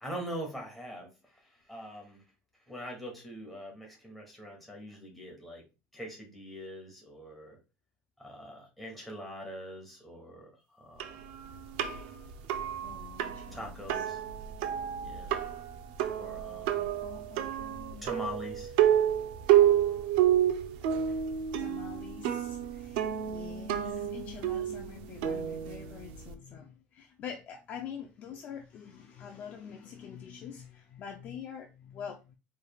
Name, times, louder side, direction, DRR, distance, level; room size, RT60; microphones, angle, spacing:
voice 1, 0.0-2.2 2.7-5.6 5.9-7.6 8.2-10.5 10.8-11.2 12.6-12.7 13.5-14.2 15.0-15.3 16.2-16.9 18.0-18.7 21.1-21.2 23.7-24.0, equal, ahead, -1 dB, 1.2 m, -43 dB
sound 1, 11.0-26.3, right 10 dB, 85° right, 0.6 m, -29 dB
voice 2, 12.8-14.1 17.0-18.2 21.6-32.4, left 8 dB, 35° left, 3 dB, 0.5 m, -46 dB
4.7 x 3.3 x 2.3 m, 0.29 s
cardioid pair, 175°, 5 cm